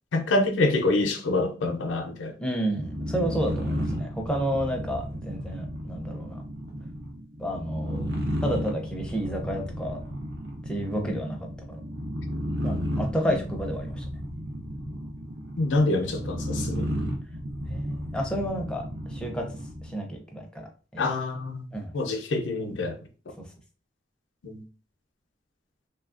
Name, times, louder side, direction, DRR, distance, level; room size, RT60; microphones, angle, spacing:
voice 1, 0.1-2.3 11.0-11.2 13.2-13.5 15.6-16.9 21.0-21.7 21.9-23.0 24.4-24.6, left 2 dB, 90° left, 0.5 m, -26 dB
voice 2, 2.4-6.4 7.4-8.1 8.4-10.0 10.7-11.8 12.6-14.0 17.7-19.5 19.8-21.0 21.7-21.9, equal, 5° left, 0.5 m, -31 dB
sound 1, 2.7-20.0, equal, 65° right, 0.7 m, -33 dB
3.1 x 2.3 x 2.4 m
head